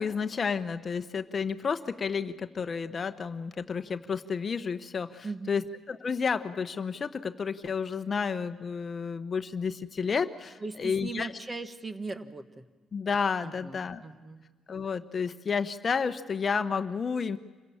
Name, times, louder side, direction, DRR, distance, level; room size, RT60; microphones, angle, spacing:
voice 1, 0.0-11.3 12.9-14.0 14.7-17.4, left 5 dB, 40° left, 10 dB, 0.9 m, -31 dB
voice 2, 5.2-5.6 10.6-12.7 13.4-14.4, right 3 dB, 25° right, 9 dB, 1.4 m, -39 dB
26.5 x 16.0 x 8.6 m, 1.4 s
cardioid pair, 90°, 0 cm